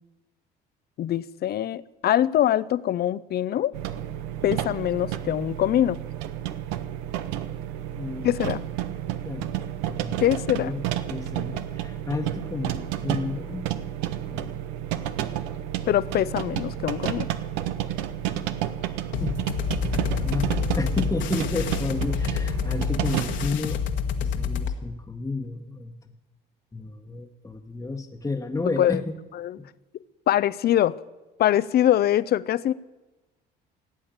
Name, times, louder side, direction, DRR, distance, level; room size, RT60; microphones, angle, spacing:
voice 1, 1.0-3.7 4.4-6.0 8.2-8.6 10.2-10.7 15.9-17.3 28.6-29.0 29.3-29.6 30.3-31.0 31.4-32.7, left 12 dB, 55° left, 0.6 m, -23 dB
sound 1, 3.7-23.6, right 12 dB, 90° right, 0.8 m, -31 dB
voice 2, 7.9-8.3 9.3-9.5 9.9-10.2 10.5-10.8 11.1-13.7 14.3-14.6 19.1-19.4 19.9-23.8 24.2-26.0 26.7-29.1 29.6-29.7, left 3 dB, 15° left, 1.2 m, -32 dB
sound 2, 19.1-24.7, left 7 dB, 70° left, 1.5 m, -28 dB
17.0 x 8.5 x 8.9 m
supercardioid pair, 85°, 20 cm